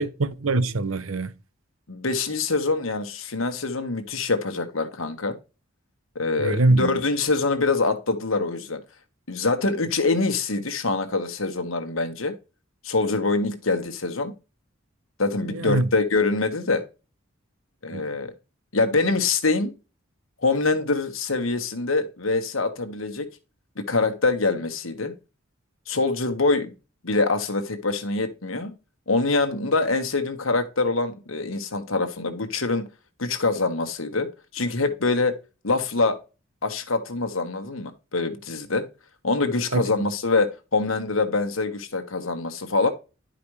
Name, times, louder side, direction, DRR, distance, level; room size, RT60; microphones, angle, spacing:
voice 1, 0.0-1.3 6.4-7.0 15.5-15.9 17.9-18.1 39.7-39.8, right 2 dB, 80° right, 0.8 m, -23 dB
voice 2, 1.9-5.4 6.1-8.8 9.3-12.3 12.8-14.3 15.2-16.8 17.8-18.3 18.7-19.7 20.4-23.3 23.8-25.1 25.9-26.7 27.0-28.7 29.1-32.8 33.2-35.4 35.6-36.2 36.6-38.9 39.2-42.9, left 3 dB, 80° left, 1.4 m, -24 dB
11.5 x 5.1 x 3.2 m
head